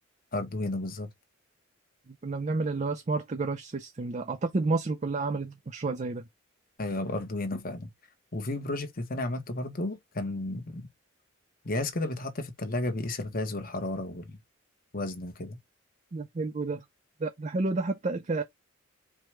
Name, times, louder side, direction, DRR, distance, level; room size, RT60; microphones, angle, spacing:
voice 1, 0.3-1.1 6.8-7.9 8.3-10.9 11.6-14.4 14.9-15.6, left 2 dB, 45° left, 1.1 m, -33 dB
voice 2, 2.2-6.2 16.1-16.8 17.2-18.4, right 3 dB, 35° right, 0.5 m, -30 dB
4.7 x 2.3 x 4.5 m
head